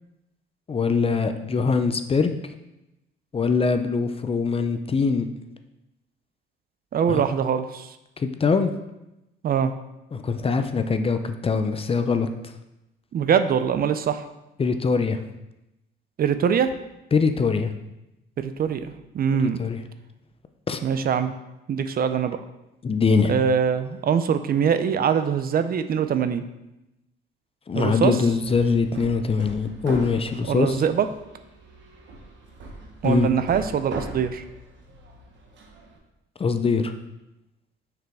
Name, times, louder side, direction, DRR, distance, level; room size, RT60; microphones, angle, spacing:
voice 1, 0.7-2.3 3.3-5.3 7.1-7.2 8.2-8.7 10.1-12.3 14.6-15.2 17.1-17.7 19.4-19.8 20.7-20.8 22.8-23.3 27.7-30.8 33.0-33.3 36.4-36.9, left 5 dB, 30° left, 8 dB, 0.5 m, -22 dB
voice 2, 6.9-7.9 9.4-9.7 13.1-14.2 16.2-16.7 18.4-19.6 20.8-21.3 21.7-22.4 23.3-26.4 27.7-28.2 30.5-31.1 33.0-34.4, right 7 dB, 50° right, 10 dB, 0.4 m, -23 dB
Hammer, 28.2-36.0, right 2 dB, 70° right, 1.1 m, -41 dB
6.2 x 4.9 x 3.5 m, 0.93 s
cardioid pair, 90°, 20 cm